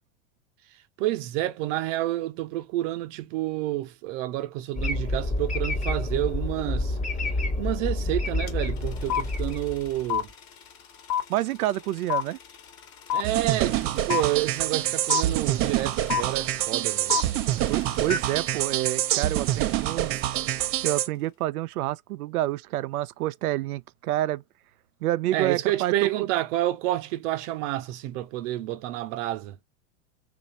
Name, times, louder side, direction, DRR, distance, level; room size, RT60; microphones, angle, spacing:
voice 1, 1.0-7.0 7.6-10.3 13.1-17.2 25.3-29.6, right 15 dB, 55° right, 0.9 m, -29 dB
sound 1, 4.7-10.2, left 2 dB, 15° left, 1.1 m, -28 dB
sound 2, 8.5-8.6 8.8-19.9, left 9 dB, 40° left, 1.3 m, -30 dB
voice 2, 11.3-12.4 17.7-20.2 20.8-24.4 25.0-26.3, right 15 dB, 80° right, 0.6 m, -28 dB
sound 3, 13.2-21.1, right 13 dB, 30° right, 0.5 m, -26 dB
3.0 x 2.6 x 4.1 m
hypercardioid pair, 110°, 44 cm